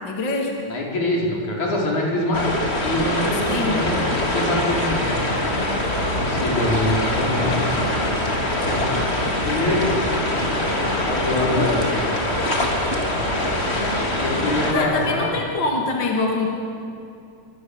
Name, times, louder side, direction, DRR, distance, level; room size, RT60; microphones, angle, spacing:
voice 1, 0.0-0.6 3.5-3.8 14.7-16.5, left 3 dB, 35° left, 1 dB, 3.3 m, -24 dB
voice 2, 0.7-2.5 2.8-5.3 6.0-7.7 8.1-8.3 8.7-9.0 9.4-10.1 11.0-12.0 14.2-15.3, left 1 dB, 65° left, -2 dB, 6.4 m, -24 dB
sound 1, 2.3-14.7, left 1 dB, 20° left, 3.2 m, -23 dB
28.0 x 25.0 x 8.3 m, 2.5 s
omnidirectional pair, 3.6 m